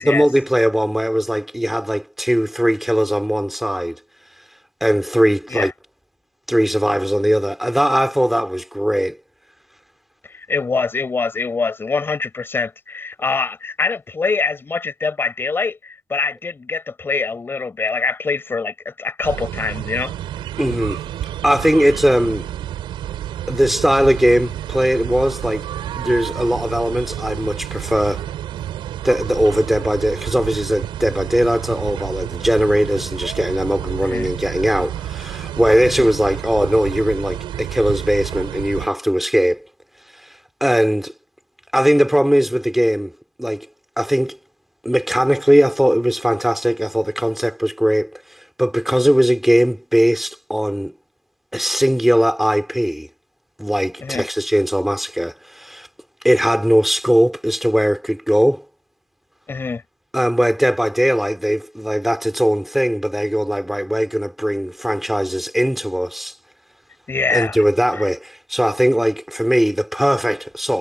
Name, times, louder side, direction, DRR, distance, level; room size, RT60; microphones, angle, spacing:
voice 1, 0.0-4.0 4.8-5.7 6.5-9.2 20.6-21.0 21.4-22.5 23.5-25.7 25.9-28.3 29.0-39.7 40.2-41.1 41.7-43.1 43.4-43.7 44.0-44.4 44.8-50.9 51.5-53.1 53.6-55.9 56.2-58.6 60.1-66.3 67.3-70.8, equal, ahead, 3.7 m, -19 dB
voice 2, 10.3-20.1 34.0-34.3 35.9-36.1 54.0-54.3 59.5-59.8 67.1-67.6 67.9-68.0, left 4 dB, 25° left, 4.6 m, -24 dB
sound 1, 19.2-38.9, right 12 dB, 80° right, 5.7 m, -30 dB
cardioid pair, 125°, 8 cm